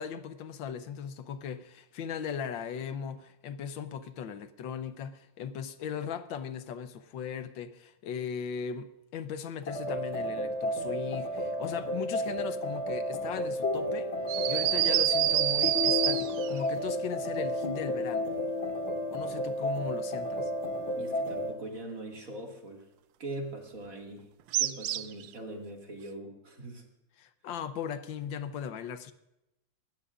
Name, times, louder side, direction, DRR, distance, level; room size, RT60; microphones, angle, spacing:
voice 1, 0.0-14.1 14.5-18.3 19.1-20.5 27.2-29.1, left 7 dB, 85° left, 1.6 m, -38 dB
sound 1, 9.7-21.5, left 1 dB, 60° left, 2.2 m, -32 dB
sound 2, 14.3-16.6 24.5-25.3, right 12 dB, 85° right, 1.4 m, -27 dB
voice 2, 21.0-22.9 23.2-24.3 24.6-26.8, right 2 dB, 45° right, 2.6 m, -41 dB
21.0 x 15.0 x 2.5 m
omnidirectional pair, 2.0 m